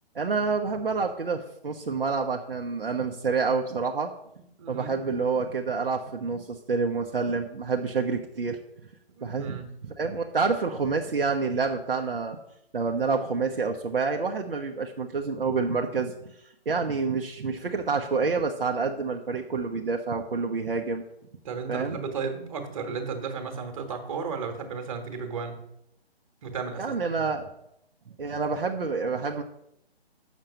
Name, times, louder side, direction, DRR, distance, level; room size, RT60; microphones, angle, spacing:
voice 1, 0.1-4.1 4.7-8.6 9.2-9.6 10.0-12.4 12.7-21.0 21.7-22.0 26.8-27.5 28.2-29.4, right 4 dB, 60° right, 2 dB, 1.0 m, -28 dB
voice 2, 4.6-5.0 9.1-9.7 21.4-25.6 26.4-26.9, right 5 dB, 30° right, 5 dB, 1.6 m, -34 dB
7.6 x 6.5 x 7.3 m, 0.78 s
figure-of-eight pair, 140°, 31 cm